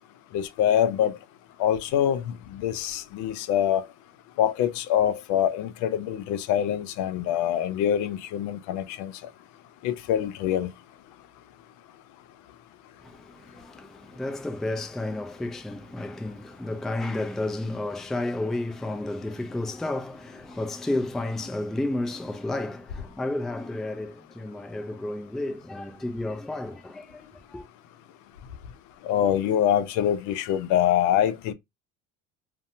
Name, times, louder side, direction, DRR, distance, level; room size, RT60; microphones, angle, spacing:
voice 1, 0.3-1.2 1.6-3.8 4.4-9.1 9.8-10.7 29.0-31.5, left 10 dB, 65° left, 0.5 m, -25 dB
voice 2, 13.0-27.6, left 2 dB, ahead, 0.3 m, -32 dB
2.6 x 2.2 x 2.6 m
supercardioid pair, 90°, 32 cm